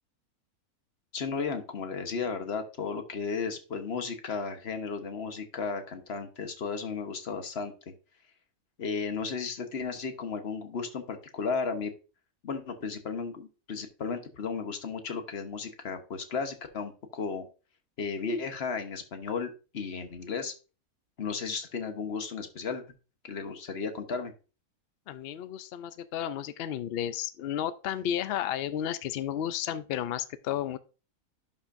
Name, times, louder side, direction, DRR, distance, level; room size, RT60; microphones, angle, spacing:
voice 1, 1.1-7.7 8.8-11.9 12.4-17.4 18.0-20.5 21.2-22.8 23.2-24.3, left 5 dB, 45° left, 1.2 m, -34 dB
voice 2, 25.1-30.8, left 10 dB, 80° left, 0.5 m, -32 dB
11.5 x 5.6 x 2.6 m
omnidirectional pair, 1.6 m